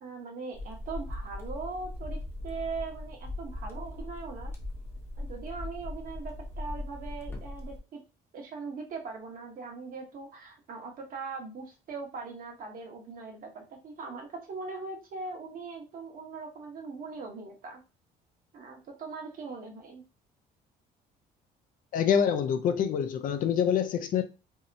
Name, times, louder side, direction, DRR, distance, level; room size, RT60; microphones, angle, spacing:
voice 1, 0.0-4.5 5.2-8.0 8.3-17.8 18.5-20.0, right 4 dB, 55° right, 0.9 m, -40 dB
sound 1, 0.5-7.8, left 2 dB, 15° left, 0.7 m, -39 dB
voice 2, 21.9-24.2, left 8 dB, 55° left, 0.4 m, -26 dB
2.7 x 2.0 x 2.5 m
cardioid pair, 110°, 17 cm